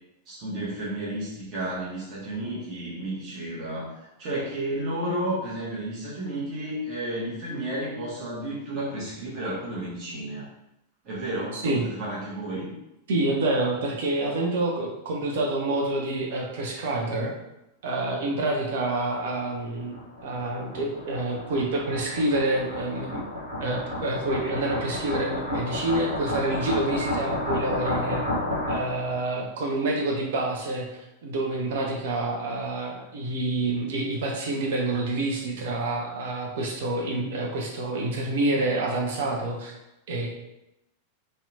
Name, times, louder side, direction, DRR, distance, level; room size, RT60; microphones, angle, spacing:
voice 1, 0.3-10.5 11.0-12.7, right 1 dB, 35° right, -7 dB, 0.8 m, -32 dB
voice 2, 11.5-11.9 13.1-17.3 17.8-20.0 20.2-23.2 23.6-28.3 28.7-30.9 31.2-39.7 40.1-40.3, right 2 dB, 55° right, -1 dB, 0.4 m, -27 dB
sound 1, 19.2-29.1, left 1 dB, 80° right, 1.0 m, -32 dB
2.7 x 2.1 x 2.6 m, 0.89 s
figure-of-eight pair, 90°, 0 cm